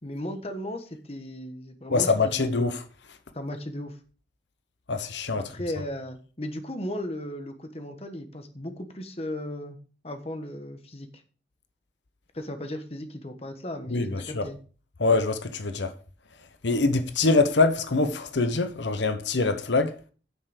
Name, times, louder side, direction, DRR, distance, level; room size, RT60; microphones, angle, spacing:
voice 1, 0.0-2.6 3.3-4.0 5.4-9.8 10.0-11.1 12.3-14.6, left 1 dB, 35° left, 1.3 m, -36 dB
voice 2, 1.9-2.8 4.9-5.4 13.9-14.4 15.0-15.9 16.6-19.9, left 3 dB, 90° left, 0.9 m, -24 dB
9.5 x 6.7 x 5.0 m
head